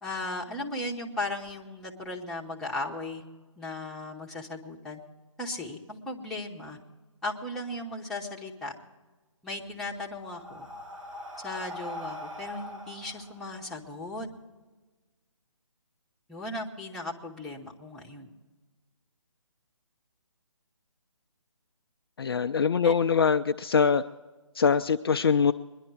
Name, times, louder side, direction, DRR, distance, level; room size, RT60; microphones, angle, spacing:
voice 1, 0.0-3.2 3.6-5.0 5.4-6.8 7.2-8.8 9.4-10.7 11.4-14.3 16.3-18.3 22.8-22.9, left 2 dB, ahead, -4 dB, 0.9 m, -36 dB
Breathing, 9.5-14.3, left 1 dB, 70° right, 2.3 m, -42 dB
voice 2, 22.2-24.0 24.6-25.5, left 6 dB, 45° left, 8 dB, 0.4 m, -23 dB
21.5 x 11.0 x 4.6 m, 1.3 s
figure-of-eight pair, 150°, 17 cm